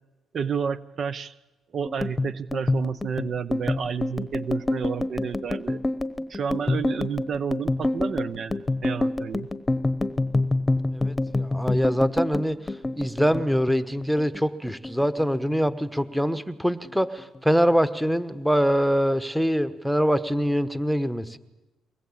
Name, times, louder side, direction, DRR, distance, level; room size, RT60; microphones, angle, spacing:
voice 1, 0.3-1.3 1.7-5.8 6.3-9.5, right 6 dB, 55° right, 16 dB, 0.8 m, -30 dB
sound 1, 1.8-14.4 14.7-15.7 16.0-16.4 16.7-17.4, left 2 dB, 20° left, 1.1 m, -27 dB
voice 2, 10.9-12.6 13.0-21.4, equal, ahead, 13 dB, 1.3 m, -24 dB
23.5 x 20.0 x 8.7 m, 1.1 s
cardioid pair, 90°, 0 cm